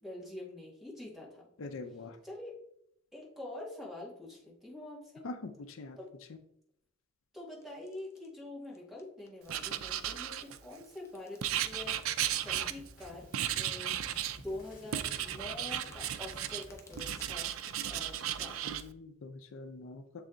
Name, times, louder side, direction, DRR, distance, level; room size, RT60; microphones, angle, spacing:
voice 1, 0.0-1.5 2.2-2.6 3.1-5.3 6.0-6.1 7.3-12.0 12.3-13.3 13.5-14.0 14.3-17.5 17.9-18.7, left 1 dB, ahead, -4 dB, 1.9 m, -45 dB
voice 2, 1.6-2.2 5.2-6.0 18.6-20.3, left 3 dB, 70° left, 8 dB, 0.5 m, -44 dB
sound 1, 7.6-8.3 8.6-9.5 9.7-12.8 13.1-13.7 14.2-14.3 14.4-17.8, left 3 dB, 15° left, 0.7 m, -60 dB
Writing, 9.5-10.8 11.4-13.0 13.3-14.4 14.9-16.6 17.0-18.8, right 10 dB, 80° right, 0.4 m, -35 dB
sound 2, 11.7-17.3, equal, 45° left, 1.6 m, -53 dB
7.4 x 3.3 x 3.8 m, 0.71 s
head